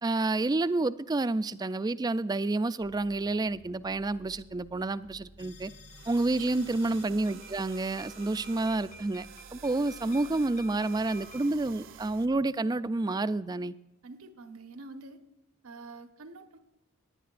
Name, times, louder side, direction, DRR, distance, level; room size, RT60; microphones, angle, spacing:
voice 1, 0.0-5.7 6.1-9.3 9.5-13.8, right 2 dB, 20° right, 0.3 m, -29 dB
sound 1, 2.8-12.3, right 1 dB, 85° left, 4.1 m, -56 dB
sound 2, 5.4-11.5, left 2 dB, 35° left, 0.8 m, -51 dB
sound 3, 5.9-12.3, right 9 dB, 60° right, 0.6 m, -51 dB
voice 2, 6.4-6.7 14.0-15.2 15.6-16.6, right 3 dB, 85° right, 1.2 m, -46 dB
18.5 x 11.0 x 2.5 m
head